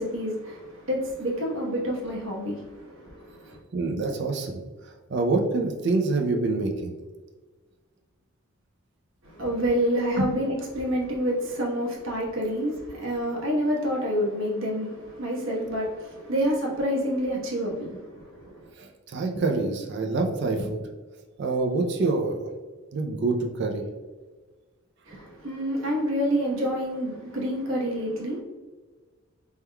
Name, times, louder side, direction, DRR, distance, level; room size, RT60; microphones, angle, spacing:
voice 1, 0.0-3.6 9.2-18.7 25.1-28.4, equal, 70° right, 1.1 m, -28 dB
voice 2, 3.7-4.6 5.1-6.9 10.2-10.3 18.8-20.9 21.4-22.5 22.9-23.9, right 3 dB, 55° right, 0.4 m, -26 dB
4.5 x 3.6 x 2.2 m
head